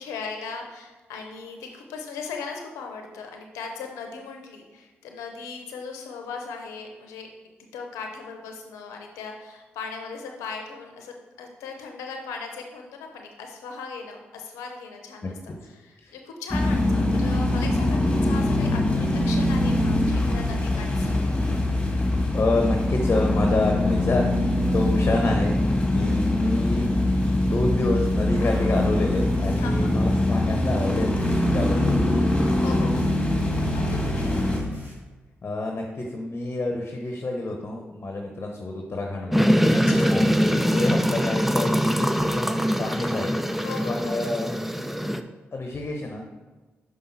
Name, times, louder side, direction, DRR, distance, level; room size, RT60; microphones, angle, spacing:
voice 1, 0.0-7.3 7.7-21.3 29.6-30.0 32.6-33.1 33.7-34.6 39.7-40.2 43.6-44.2, left 5 dB, 85° left, 3 dB, 0.7 m, -38 dB
voice 2, 15.2-15.6 15.9-16.1 22.3-26.9 27.4-31.1 31.5-32.1 35.4-39.5 40.1-43.4 43.9-44.6 45.5-46.2, left 2 dB, 45° left, 2 dB, 0.9 m, -28 dB
sound 1, 16.5-34.6, left 1 dB, 20° left, 1.7 m, -23 dB
sound 2, 27.9-34.9, right 2 dB, 45° right, 2.2 m, -41 dB
sound 3, 39.3-45.2, equal, 5° right, 0.5 m, -23 dB
5.6 x 5.2 x 4.1 m, 1.2 s
hypercardioid pair, 40°, 5 cm